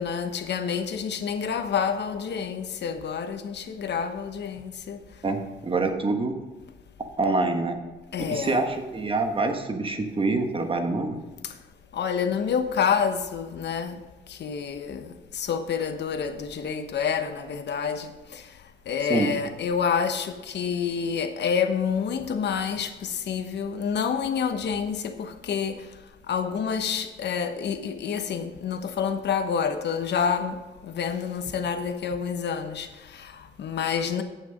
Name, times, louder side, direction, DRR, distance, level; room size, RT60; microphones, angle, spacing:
voice 1, 0.0-5.0 8.1-8.6 11.9-14.0 14.3-18.4 18.9-25.8 26.3-34.2, left 6 dB, 60° left, 1.1 m, -28 dB
voice 2, 5.2-6.3 7.2-7.8 8.3-11.2 19.0-19.3, right 3 dB, 25° right, 1.4 m, -26 dB
8.8 x 7.4 x 5.2 m
cardioid pair, 90°, 20 cm